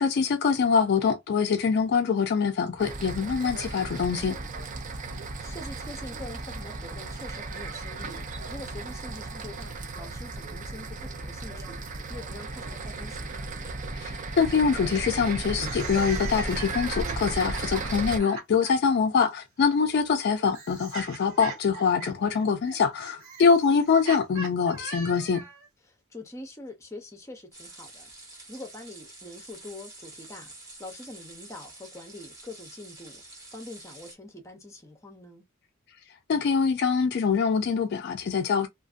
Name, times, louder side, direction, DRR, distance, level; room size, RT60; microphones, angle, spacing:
voice 1, 0.0-4.4 14.0-25.4 36.3-38.7, left 5 dB, 50° left, 0.3 m, -24 dB
sound 1, 2.8-18.2, right 3 dB, 35° right, 0.4 m, -35 dB
voice 2, 5.4-11.8 12.1-13.4 25.8-30.5 30.8-33.2 33.5-35.4, left 1 dB, 15° left, 0.6 m, -44 dB
sound 2, 15.5-18.7 19.8-25.7, right 3 dB, 80° right, 1.3 m, -40 dB
sound 3, 27.5-34.1, right 2 dB, 15° right, 0.9 m, -48 dB
2.5 x 2.4 x 2.4 m
head